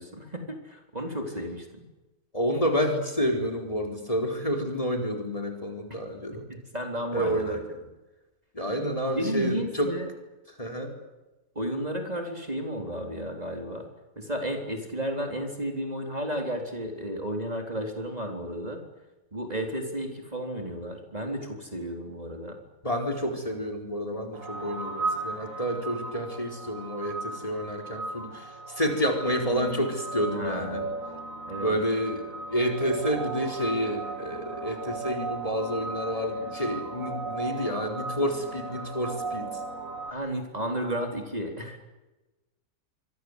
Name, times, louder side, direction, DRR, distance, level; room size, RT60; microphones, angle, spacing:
voice 1, 0.0-1.8 5.9-6.0 6.5-7.6 9.2-10.1 11.6-13.9 14.2-18.8 19.3-22.6 30.3-30.9 31.5-31.8 40.1-41.8, equal, 25° right, 3 dB, 4.0 m, -33 dB
voice 2, 2.3-6.4 7.1-7.6 8.5-9.9 10.6-10.9 22.8-28.4 28.8-30.8 31.6-32.2 32.5-39.5, equal, 25° left, 4 dB, 4.4 m, -29 dB
sound 1, 24.3-40.1, right 3 dB, 60° right, 2.7 m, -36 dB
27.0 x 24.5 x 8.2 m, 1.1 s
omnidirectional pair, 1.6 m